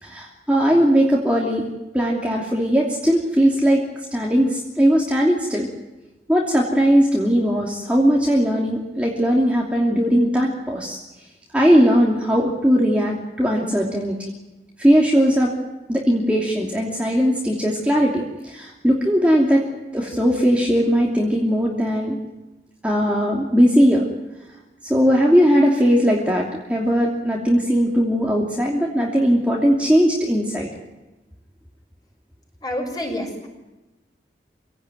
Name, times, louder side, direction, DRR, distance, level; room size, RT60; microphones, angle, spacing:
voice 1, 0.0-3.8 4.1-5.7 6.3-11.0 11.5-14.3 14.8-15.5 15.9-19.6 19.9-22.2 22.8-24.1 24.8-30.7, equal, 10° right, -3 dB, 2.8 m, -19 dB
voice 2, 32.6-33.5, left 1 dB, 20° left, 1 dB, 6.7 m, -28 dB
27.0 x 17.5 x 9.3 m, 1.1 s
head